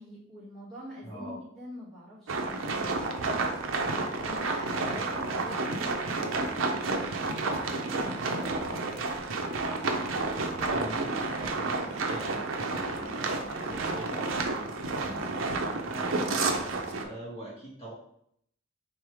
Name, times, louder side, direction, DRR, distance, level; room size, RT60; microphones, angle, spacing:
voice 1, 0.0-3.4 3.9-8.2 8.5-8.9, equal, 5° left, -11 dB, 1.6 m, -45 dB
voice 2, 1.0-1.4 10.2-15.7 16.2-17.9, right 1 dB, 30° left, -7 dB, 1.8 m, -43 dB
sound 1, 2.3-17.0, right 3 dB, 85° right, 0.6 m, -30 dB
3.4 x 3.2 x 4.8 m, 0.68 s
head